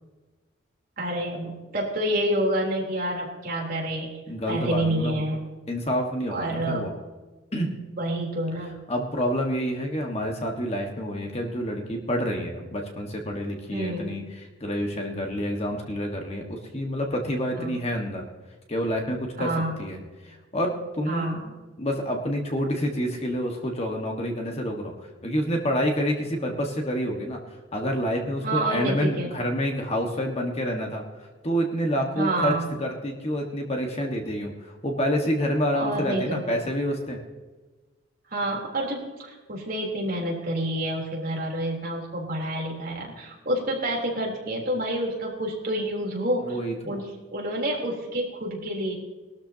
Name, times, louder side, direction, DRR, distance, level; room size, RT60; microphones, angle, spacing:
voice 1, 1.0-4.2 4.5-5.4 6.3-6.8 8.0-8.8 13.7-14.1 17.6-17.8 19.4-19.8 21.1-21.5 28.4-29.3 32.2-32.7 35.7-36.6 38.3-46.6 46.9-49.0, right 1 dB, 45° right, -2 dB, 3.6 m, -28 dB
voice 2, 4.3-5.3 5.7-6.9 7.5-7.7 8.9-18.2 18.7-19.5 19.8-27.4 27.7-37.2 46.4-47.0, equal, 30° left, 2 dB, 1.6 m, -28 dB
20.0 x 13.0 x 2.9 m, 1.3 s
head